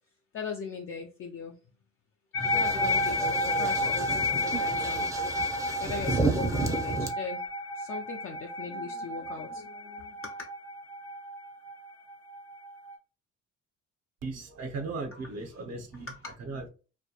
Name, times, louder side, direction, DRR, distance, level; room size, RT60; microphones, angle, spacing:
voice 1, 0.3-1.5 2.4-5.1 5.8-7.4 7.8-10.5 15.1-15.3 15.9-16.4, left 5 dB, 45° left, 0.4 m, -40 dB
sound 1, 2.3-12.9, left 2 dB, 85° left, 1.0 m, -31 dB
sound 2, 2.4-7.1, right 3 dB, 10° right, 0.5 m, -32 dB
voice 2, 14.2-16.1 16.4-16.7, right 3 dB, 60° right, 0.6 m, -37 dB
2.2 x 2.1 x 2.7 m
cardioid pair, 90°, 30 cm